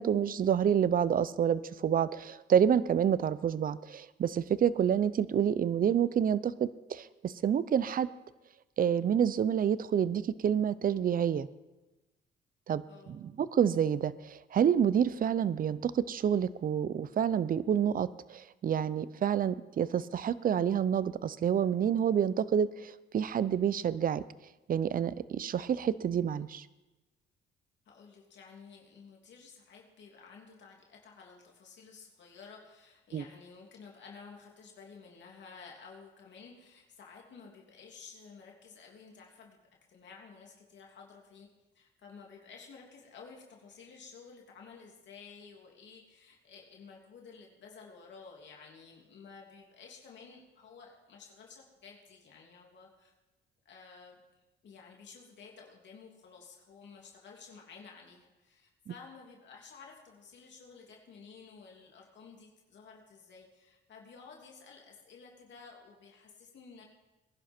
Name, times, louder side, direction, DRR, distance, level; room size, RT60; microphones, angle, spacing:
voice 1, 0.0-8.1 8.8-11.5 12.7-12.8 13.1-24.2 24.7-26.6 33.1-33.2, right 8 dB, 45° right, 17 dB, 0.6 m, -28 dB
voice 2, 27.9-39.6 39.9-41.5 41.7-53.1 53.6-54.2 54.6-66.8, left 5 dB, 65° left, -1 dB, 2.8 m, -53 dB
20.5 x 11.0 x 4.4 m, 1.1 s
cardioid pair, 90°, 20 cm